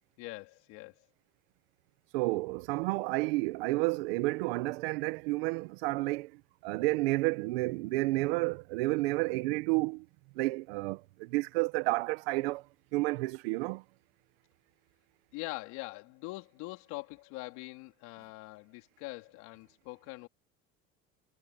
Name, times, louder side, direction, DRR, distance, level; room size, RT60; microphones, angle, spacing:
voice 1, 0.2-0.9 15.3-20.3, left 23 dB, 75° left, 3.9 m, -43 dB
voice 2, 2.1-10.0 10.3-12.6 12.9-13.8, right 22 dB, 90° right, 1.4 m, -31 dB
supercardioid pair, 105°, 29 cm